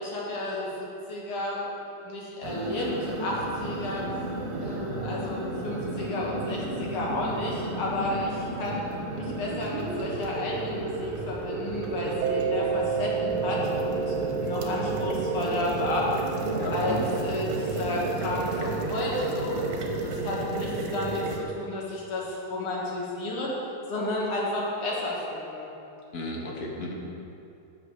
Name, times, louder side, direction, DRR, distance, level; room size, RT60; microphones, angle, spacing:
voice 1, 0.0-1.7 2.0-4.0 4.6-8.8 9.1-16.1 16.7-17.0 17.2-19.7 20.0-23.5 23.9-25.7, left 2 dB, 85° left, -4 dB, 2.7 m, -32 dB
sound 1, 2.4-21.4, right 3 dB, 55° right, 1.4 m, -32 dB
Mallet percussion, 12.2-18.6, right 6 dB, 80° right, 1.4 m, -32 dB
voice 2, 16.6-17.1 26.1-27.1, left 1 dB, 50° left, -1 dB, 1.7 m, -34 dB
8.7 x 6.8 x 6.5 m, 2.7 s
omnidirectional pair, 2.3 m